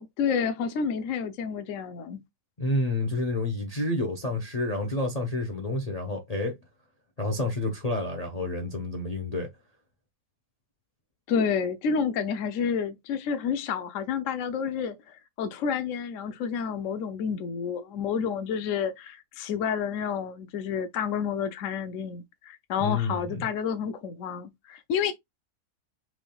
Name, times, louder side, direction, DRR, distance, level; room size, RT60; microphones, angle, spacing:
voice 1, 0.0-2.2 11.3-25.1, left 6 dB, 65° left, 0.9 m, -29 dB
voice 2, 2.6-6.5 7.2-9.5 22.8-23.5, left 2 dB, 35° left, 0.7 m, -29 dB
6.0 x 3.5 x 2.3 m
omnidirectional pair, 1.7 m